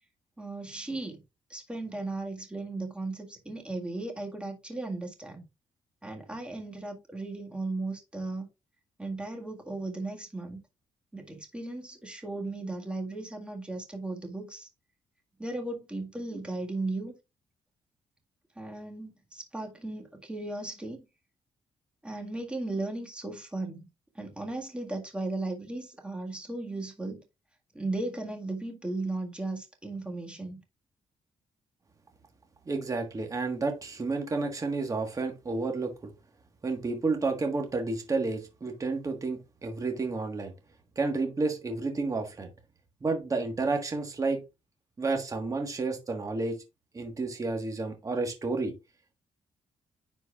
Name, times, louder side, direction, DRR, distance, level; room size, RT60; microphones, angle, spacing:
voice 1, 0.4-1.2 1.5-5.5 6.0-8.5 9.0-10.6 11.1-14.7 15.4-17.1 18.6-21.1 22.0-23.9 24.2-27.2 27.7-30.6, right 2 dB, 10° right, 1.7 m, -36 dB
voice 2, 32.7-36.1 36.6-40.5 41.0-42.5 43.0-44.4 45.0-46.6 46.9-48.7, right 3 dB, 25° right, 1.4 m, -31 dB
9.8 x 4.5 x 2.4 m
cardioid pair, 115°, 12 cm